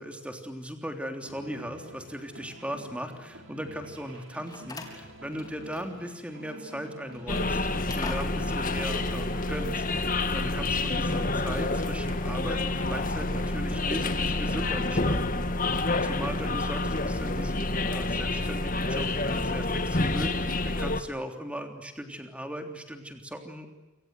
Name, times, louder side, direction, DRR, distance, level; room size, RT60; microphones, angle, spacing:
voice 1, 0.0-15.7 16.0-23.7, equal, 5° right, 5 dB, 3.4 m, -38 dB
sound 1, 1.2-21.1, right 1 dB, 60° right, 5.4 m, -49 dB
Slam, 4.1-6.1 6.4-6.6 7.1-8.7, left 2 dB, 20° left, 4.0 m, -43 dB
sound 2, 7.3-21.0, left 2 dB, 35° left, 1.9 m, -28 dB
28.5 x 25.5 x 7.9 m, 1.1 s
head